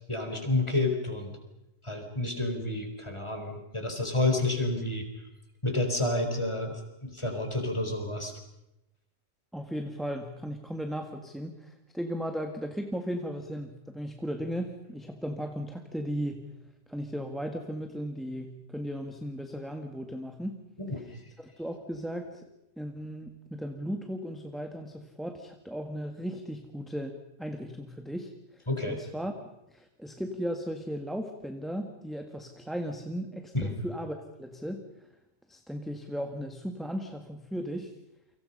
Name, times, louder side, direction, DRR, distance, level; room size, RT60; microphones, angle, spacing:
voice 1, 0.1-1.3 1.8-5.1 5.6-8.3 20.8-21.0 28.7-29.0 33.5-33.8, left 2 dB, 25° left, 4 dB, 4.3 m, -30 dB
voice 2, 9.5-16.4 16.9-20.6 21.0-21.1 21.4-22.5 22.8-34.8 35.5-37.9, equal, ahead, 5 dB, 1.7 m, -36 dB
29.5 x 24.5 x 5.5 m, 0.91 s
omnidirectional pair, 1.2 m